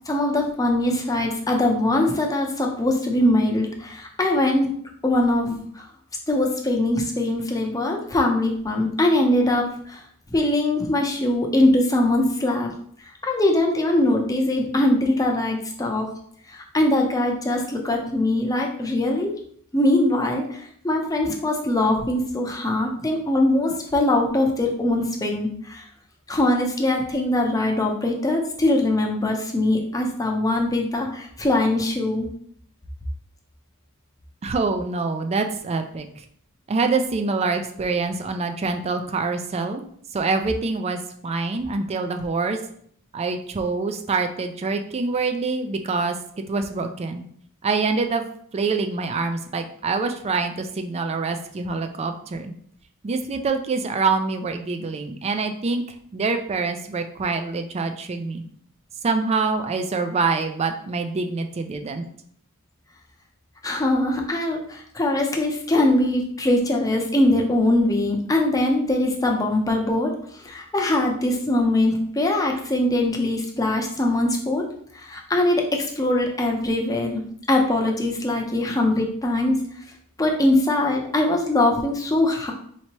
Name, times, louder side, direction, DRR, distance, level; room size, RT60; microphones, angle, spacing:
voice 1, 0.1-4.7 5.0-5.8 6.3-10.0 10.3-12.7 13.3-16.1 16.5-19.3 19.7-25.8 26.3-32.3 63.6-70.1 70.4-74.6 75.0-77.2 77.5-79.6 80.2-82.5, left 1 dB, 15° left, 1 dB, 0.6 m, -22 dB
voice 2, 34.4-36.2 36.7-39.8 40.1-42.6 43.1-46.2 46.5-47.2 47.6-48.2 48.5-52.5 53.0-58.4 59.0-62.1, right 4 dB, 30° right, 6 dB, 0.3 m, -25 dB
4.4 x 2.9 x 2.9 m, 0.63 s
head